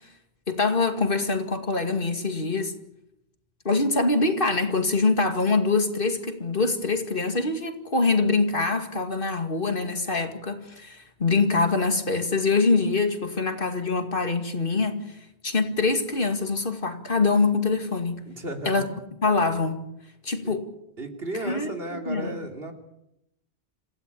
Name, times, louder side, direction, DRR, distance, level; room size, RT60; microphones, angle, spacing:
voice 1, 0.5-2.7 3.6-15.1 15.4-18.2 18.7-18.8 19.2-19.8 20.2-20.6 21.4-21.7 22.1-22.3, left 3 dB, 60° left, 2.4 m, -24 dB
voice 2, 18.3-18.9 20.4-20.5 21.0-22.7, right 1 dB, 70° right, 3.3 m, -34 dB
27.5 x 16.0 x 8.6 m
omnidirectional pair, 1.1 m